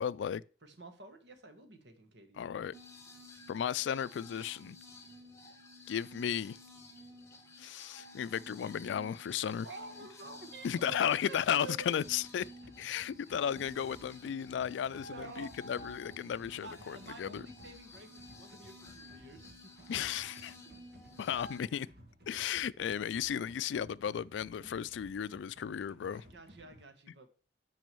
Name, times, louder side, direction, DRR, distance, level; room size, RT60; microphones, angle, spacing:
voice 1, 0.0-0.4 2.4-2.7 3.5-4.8 5.9-6.6 7.6-9.7 10.6-12.5 12.8-17.4 19.9-20.6 21.2-21.9 22.3-26.2, left 8 dB, 85° left, 0.3 m, -34 dB
voice 2, 0.6-2.4 9.6-12.0 13.2-13.3 15.0-15.5 16.6-19.7 20.6-20.7 21.2-21.3 26.1-27.3, right 3 dB, 80° right, 1.6 m, -50 dB
sound 1, 2.7-21.6, left 1 dB, 15° left, 1.5 m, -53 dB
sound 2, 12.1-26.8, equal, 60° right, 1.5 m, -58 dB
6.2 x 5.3 x 6.8 m
head